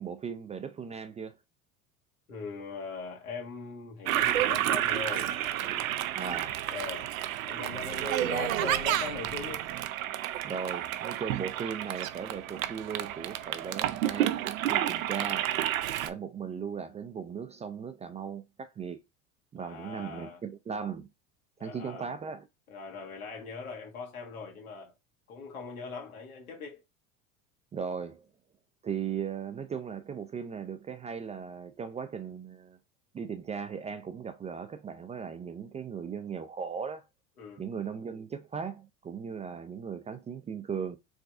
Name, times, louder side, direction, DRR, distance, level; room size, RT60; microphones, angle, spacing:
voice 1, 0.0-1.4 6.1-6.6 8.2-8.3 10.4-14.4 14.7-15.5 16.0-19.0 19.5-21.1 21.6-22.4 27.7-28.3 28.8-32.8 33.1-37.0 37.6-41.0, right 6 dB, 15° right, 0.3 m, -37 dB
voice 2, 2.3-5.9 6.7-7.1 7.5-9.6 14.7-14.9 19.6-20.4 21.6-22.1 22.7-24.9 25.3-26.8 37.4-37.6, left 4 dB, 85° left, 1.6 m, -41 dB
Toilet flush, 4.1-16.1, right 12 dB, 75° right, 0.6 m, -30 dB
4.8 x 3.2 x 2.5 m
hypercardioid pair, 80°, 42 cm